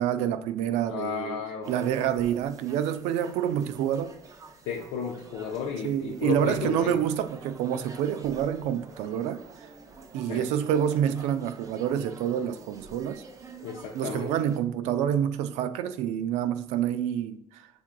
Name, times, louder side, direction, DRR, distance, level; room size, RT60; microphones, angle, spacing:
voice 1, 0.0-4.2 5.8-9.7 10.1-13.2 13.9-17.7, right 10 dB, 80° right, 0.4 m, -28 dB
voice 2, 0.9-1.7 4.7-7.0 10.3-10.5 13.6-14.5, left 6 dB, 85° left, 0.6 m, -33 dB
sound 1, 1.6-14.6, right 3 dB, 30° right, 0.6 m, -48 dB
6.0 x 3.6 x 2.2 m
cardioid pair, 100°, 12 cm